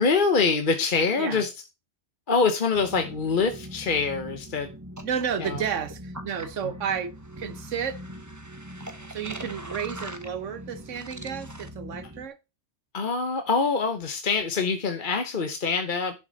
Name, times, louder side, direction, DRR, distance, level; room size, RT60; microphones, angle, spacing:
voice 1, 0.0-1.5 2.3-4.7 5.4-5.6 12.9-16.1, left 4 dB, 45° left, 1.1 m, -24 dB
sound 1, 2.7-12.3, equal, 15° right, 1.1 m, -41 dB
voice 2, 5.0-8.0 9.1-12.4, right 7 dB, 90° right, 1.4 m, -32 dB
11.0 x 6.6 x 4.0 m
omnidirectional pair, 1.2 m